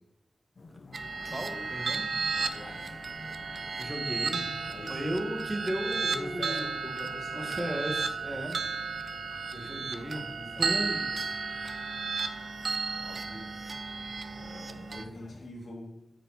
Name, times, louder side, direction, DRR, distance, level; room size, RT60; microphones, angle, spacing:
sound 1, 0.6-15.5, left 2 dB, 60° left, 0.7 m, -50 dB
sound 2, 0.9-15.0, right 4 dB, 70° right, 0.5 m, -34 dB
voice 1, 1.3-2.0 3.8-4.5 4.9-6.7 7.4-8.6 9.6-10.2 10.6-11.1, equal, 25° right, 2 dB, 1.8 m, -35 dB
voice 2, 2.3-3.0 4.7-5.0 6.1-7.5 8.3-8.6 9.1-10.7 11.2-11.3 13.0-13.5 13.8-14.0 14.4-16.0, left 2 dB, 80° left, -1 dB, 2.0 m, -45 dB
8.9 x 4.9 x 4.1 m, 0.86 s
cardioid pair, 45°, 0 cm